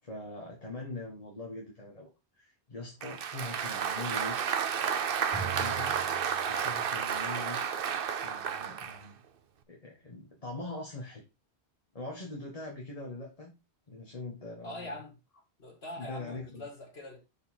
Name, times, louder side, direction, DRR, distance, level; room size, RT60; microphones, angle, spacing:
voice 1, 0.0-4.4 5.4-6.1 6.5-7.6 8.2-9.1 9.7-11.2 11.9-13.5 13.9-15.0 16.0-16.6, left 2 dB, 35° left, 1.4 m, -42 dB
Applause, 3.0-9.0, right 7 dB, 60° right, 0.9 m, -32 dB
Drum, 5.3-7.7, right 6 dB, 40° right, 3.3 m, -43 dB
voice 2, 14.6-15.1 15.6-17.2, left 1 dB, 70° left, 2.4 m, -43 dB
6.5 x 5.1 x 4.3 m
omnidirectional pair, 1.1 m